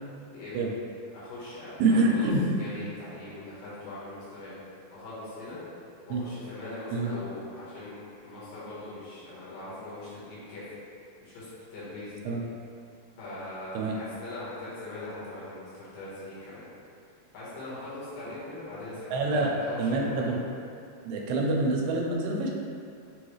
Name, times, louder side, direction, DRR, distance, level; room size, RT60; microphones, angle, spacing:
voice 1, 0.3-0.6 1.1-2.3 2.6-4.6 4.9-5.6 6.1-8.0 8.2-10.7 11.2-12.3 13.2-16.6 17.3-20.3, left 2 dB, 70° left, -10 dB, 2.7 m, -41 dB
voice 2, 1.8-2.4 6.1-6.2 6.9-7.1 12.3-12.4 13.7-14.0 19.1-19.5 19.8-20.4 21.1-22.5, right 2 dB, 85° right, -1 dB, 2.6 m, -26 dB
6.6 x 2.3 x 3.1 m, 2.4 s
omnidirectional pair, 4.4 m